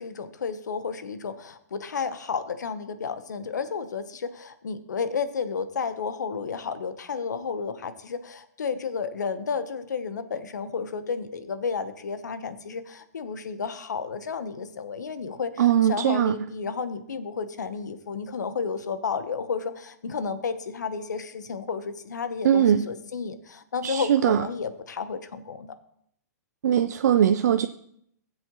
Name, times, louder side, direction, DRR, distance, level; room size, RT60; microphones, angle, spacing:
voice 1, 0.0-25.7, left 5 dB, 85° left, 1.0 m, -32 dB
voice 2, 15.6-16.4 22.4-22.8 23.8-24.4 26.6-27.7, right 9 dB, 70° right, 0.5 m, -20 dB
16.0 x 7.7 x 3.0 m
hypercardioid pair, 140°, 9 cm